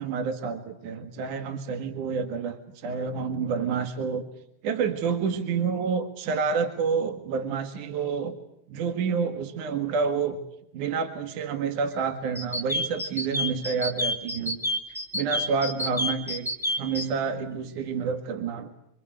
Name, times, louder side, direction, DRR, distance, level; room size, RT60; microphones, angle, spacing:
voice 1, 0.0-4.3 4.6-8.4 8.7-10.4 10.7-14.6 15.1-16.5 16.8-18.7, right 5 dB, 60° right, 7 dB, 3.3 m, -28 dB
sound 1, 12.4-17.1, left 1 dB, ahead, 3.6 m, -28 dB
27.5 x 26.0 x 8.0 m, 0.75 s
omnidirectional pair, 4.2 m